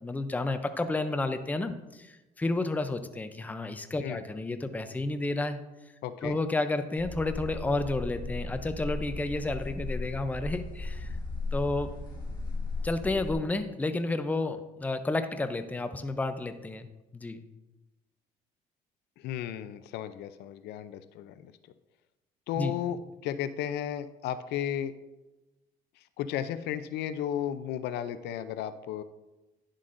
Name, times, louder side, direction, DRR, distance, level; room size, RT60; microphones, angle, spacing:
voice 1, 0.0-5.6 6.2-11.1 11.5-12.0 12.8-17.4 22.6-22.7, left 2 dB, 10° left, 9 dB, 0.5 m, -31 dB
voice 2, 6.0-6.4 19.2-21.5 22.5-24.9 26.2-29.0, left 10 dB, 80° left, 12 dB, 0.5 m, -34 dB
sound 1, 7.0-13.3, left 2 dB, 25° left, 1.8 m, -36 dB
10.5 x 7.4 x 2.6 m, 1.0 s
cardioid pair, 110°, 17 cm